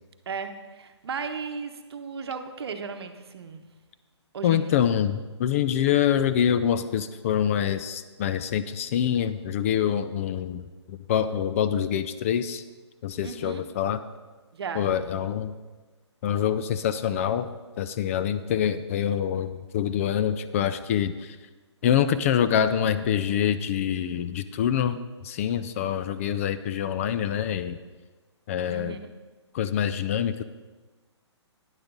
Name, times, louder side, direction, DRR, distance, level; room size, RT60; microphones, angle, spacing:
voice 1, 0.3-3.7 4.3-4.8 13.2-13.6 14.5-15.3 28.7-29.0, right 5 dB, 60° right, 8 dB, 1.0 m, -36 dB
voice 2, 4.4-12.6 13.0-14.0 14.8-15.5 16.2-17.5 17.8-21.4 21.8-25.0 25.2-27.8 28.5-29.0 29.5-30.4, left 9 dB, 30° left, 11 dB, 0.3 m, -25 dB
11.5 x 9.8 x 3.8 m, 1.3 s
figure-of-eight pair, 135°, 15 cm